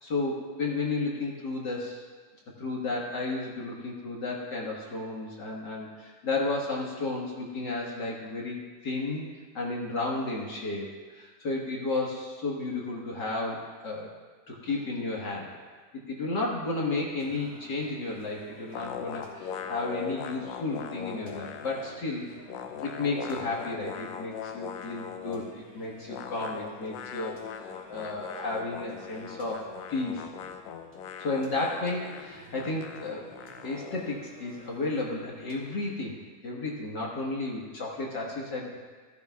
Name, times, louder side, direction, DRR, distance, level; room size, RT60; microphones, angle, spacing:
voice 1, 0.0-2.0 2.6-9.2 9.5-14.1 14.5-15.5 16.1-22.3 22.8-27.4 27.9-30.3 31.2-33.2 33.6-38.8, left 2 dB, 45° left, -3 dB, 1.5 m, -33 dB
Singing, 17.2-36.2, right 1 dB, 20° right, 2.0 m, -52 dB
sound 1, 18.7-22.0 22.3-25.6 26.1-34.1, left 8 dB, 75° left, 1.7 m, -40 dB
15.0 x 15.0 x 2.4 m, 1.5 s
omnidirectional pair, 3.6 m